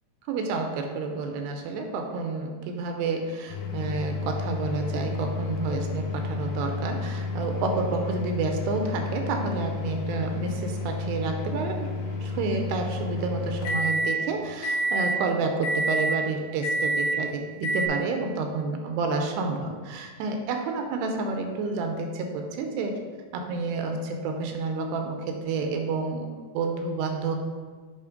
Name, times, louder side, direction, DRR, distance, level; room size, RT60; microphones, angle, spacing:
voice 1, 0.3-11.9 12.2-22.9 23.3-27.4, right 3 dB, 80° right, 4 dB, 2.7 m, -29 dB
sound 1, 3.5-14.2 14.6-15.2 15.6-16.2 16.6-17.2 17.6-17.9, left 1 dB, 85° left, 2.9 m, -30 dB
8.2 x 2.9 x 5.1 m, 1.5 s
omnidirectional pair, 4.8 m